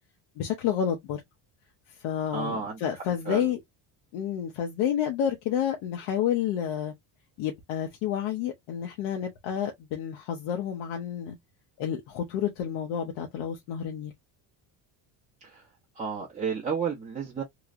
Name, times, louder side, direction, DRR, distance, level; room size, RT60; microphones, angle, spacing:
voice 1, 0.4-1.2 2.0-3.6 4.1-6.9 7.4-11.4 11.8-14.1, left 9 dB, 75° left, 1.1 m, -30 dB
voice 2, 2.3-2.8 3.2-3.5 15.4-15.6 16.0-17.4, right 6 dB, 15° right, 0.8 m, -32 dB
3.2 x 3.1 x 2.5 m
cardioid pair, 140°, 49 cm